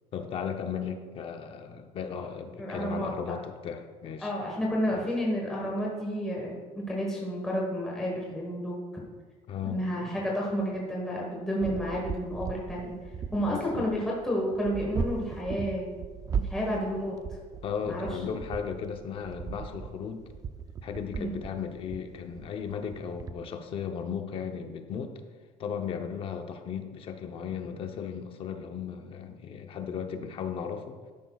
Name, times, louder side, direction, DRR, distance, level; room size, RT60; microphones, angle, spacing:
voice 1, 0.1-4.3 4.9-5.1 9.5-10.3 13.4-13.9 17.6-20.3 20.8-25.1 25.6-31.0, left 7 dB, 40° left, 6 dB, 0.7 m, -36 dB
voice 2, 2.6-3.3 4.2-9.0 9.6-13.0 13.3-15.9 16.3-17.2 17.8-18.1 21.2-21.3, equal, 5° left, -4 dB, 1.3 m, -31 dB
sound 1, 11.6-23.3, right 6 dB, 25° right, 0.3 m, -37 dB
12.0 x 10.5 x 2.3 m, 1.5 s
cardioid pair, 180°, 15 cm